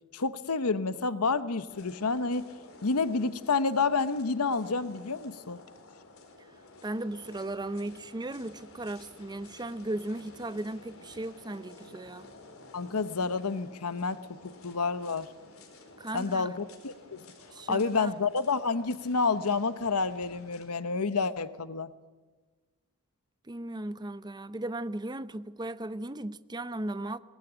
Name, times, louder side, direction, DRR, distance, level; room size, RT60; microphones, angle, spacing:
voice 1, 0.1-2.5 2.8-5.6 12.7-15.3 16.1-17.2 17.7-21.9, left 4 dB, 85° left, 1.0 m, -29 dB
sound 1, 1.7-20.6, left 2 dB, 65° left, 4.5 m, -52 dB
voice 2, 6.8-12.3 16.0-16.5 17.5-18.1 23.5-27.2, right 1 dB, 20° right, 0.7 m, -36 dB
22.5 x 19.5 x 10.0 m
head